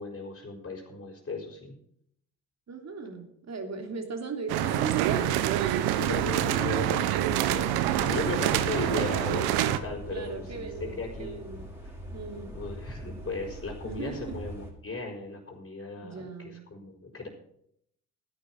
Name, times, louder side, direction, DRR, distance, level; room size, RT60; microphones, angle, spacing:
voice 1, 0.0-1.7 5.9-10.7 11.0-11.4 11.8-11.9 12.5-17.3, left 3 dB, 30° left, -2 dB, 4.8 m, -36 dB
voice 2, 2.7-5.5 10.1-11.7 12.1-12.5 13.8-14.4 16.0-16.7, right 4 dB, 45° right, 4 dB, 3.2 m, -38 dB
sound 1, 4.5-9.8, right 12 dB, 80° right, 1.0 m, -26 dB
sound 2, 7.2-14.7, right 1 dB, 5° right, 5.6 m, -42 dB
13.0 x 10.0 x 6.1 m, 0.73 s
hypercardioid pair, 55°, 38 cm